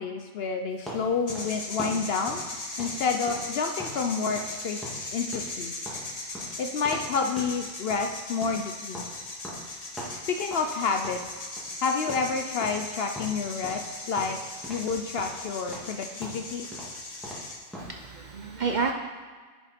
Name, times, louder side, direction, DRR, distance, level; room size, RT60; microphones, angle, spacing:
voice 1, 0.0-2.4 2.8-4.8 5.1-5.7 6.6-9.0 10.1-11.5 11.8-14.4 14.7-16.7, left 5 dB, 60° left, 5 dB, 0.7 m, -29 dB
sound 1, 0.9-4.0 4.3-4.6 4.8-7.1 7.4-7.6 7.9-10.8 11.0-11.8 12.1-12.3 12.6-13.9 14.2-14.9 15.2-18.0, equal, ahead, 2.0 m, -41 dB
sound 2, 1.3-17.6, left 2 dB, 30° left, 1.1 m, -38 dB
voice 2, 17.8-18.9, right 4 dB, 55° right, 3 dB, 0.5 m, -30 dB
10.5 x 5.9 x 4.3 m, 1.5 s
omnidirectional pair, 1.3 m